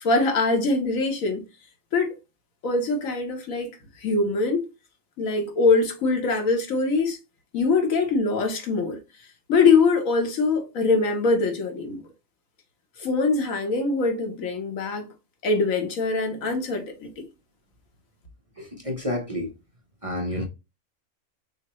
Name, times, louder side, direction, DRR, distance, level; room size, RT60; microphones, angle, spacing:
voice 1, 0.0-1.5 1.9-2.2 2.6-3.7 4.0-4.7 5.2-7.2 7.5-9.0 9.5-12.0 13.0-15.1 15.4-17.1, left 3 dB, 80° left, 1.4 m, -23 dB
voice 2, 18.6-19.5 20.0-20.5, left 1 dB, 35° right, 0.6 m, -29 dB
6.4 x 2.2 x 3.0 m
omnidirectional pair, 1.4 m